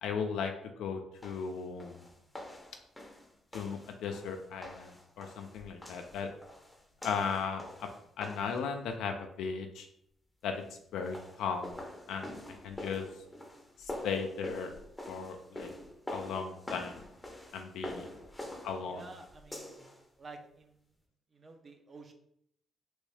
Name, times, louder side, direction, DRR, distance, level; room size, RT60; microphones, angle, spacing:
voice 1, 0.0-0.5 0.8-2.0 3.5-6.3 7.0-7.9 8.2-9.9 10.4-10.6 10.9-11.8 12.1-12.4 12.6-13.1 13.8-14.7 15.1-15.7 16.1-17.0 17.5-18.0 18.6-19.0, left 6 dB, 85° left, 4 dB, 0.3 m, -36 dB
sound 1, 1.2-8.7 10.8-20.0, left 1 dB, 10° left, 0.6 m, -46 dB
voice 2, 18.8-19.9 20.2-20.8 21.3-22.1, right 3 dB, 40° right, 5 dB, 0.6 m, -51 dB
3.0 x 2.6 x 3.2 m, 0.71 s
cardioid pair, 90°, 0 cm